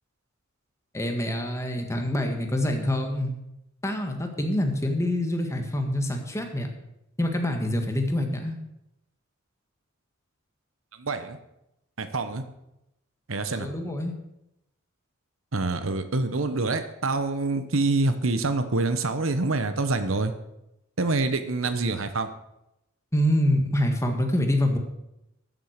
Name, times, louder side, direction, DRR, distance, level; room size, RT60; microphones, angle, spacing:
voice 1, 0.9-3.3 3.8-6.7 7.2-8.6 13.5-14.1 23.1-24.8, left 1 dB, 15° left, 4 dB, 1.7 m, -26 dB
voice 2, 11.0-11.4 12.0-12.4 13.3-13.7 15.5-20.3 21.0-22.3, right 3 dB, 75° right, 10 dB, 1.0 m, -26 dB
13.0 x 7.5 x 6.6 m, 0.87 s
head